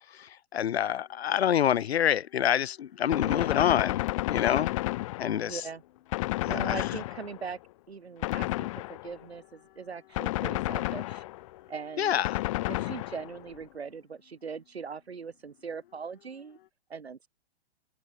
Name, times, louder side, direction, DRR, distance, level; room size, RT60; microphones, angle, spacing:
voice 1, 0.1-4.7 5.2-5.6 6.5-6.8 12.0-12.4, left 9 dB, 75° left, 0.6 m, -27 dB
sound 1, 0.8-16.7, left 13 dB, 55° left, 6.0 m, -62 dB
Gunshot gunfire, 3.1-5.6 6.1-7.5 8.2-9.2 10.1-11.5 12.2-13.5, left 18 dB, 35° left, 0.5 m, -31 dB
voice 2, 5.4-5.8 6.5-7.6 7.9-11.2 11.7-12.2 12.7-16.6 16.9-17.3, right 5 dB, 80° right, 2.6 m, -40 dB
figure-of-eight pair, 115°, 32 cm